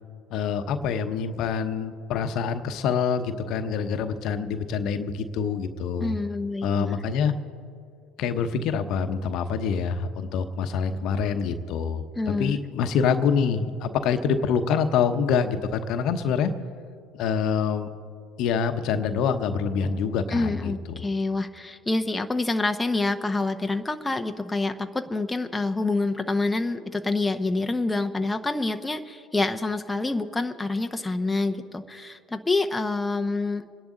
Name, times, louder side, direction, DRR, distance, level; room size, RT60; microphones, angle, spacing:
voice 1, 0.3-6.2 6.6-7.3 8.2-16.5 17.1-17.9 18.4-21.1, left 6 dB, 60° left, 9 dB, 1.0 m, -26 dB
voice 2, 6.0-7.0 12.2-12.6 20.3-33.6, left 2 dB, 10° left, 6 dB, 0.8 m, -27 dB
26.5 x 10.5 x 3.9 m, 2.3 s
hypercardioid pair, 75°, 0 cm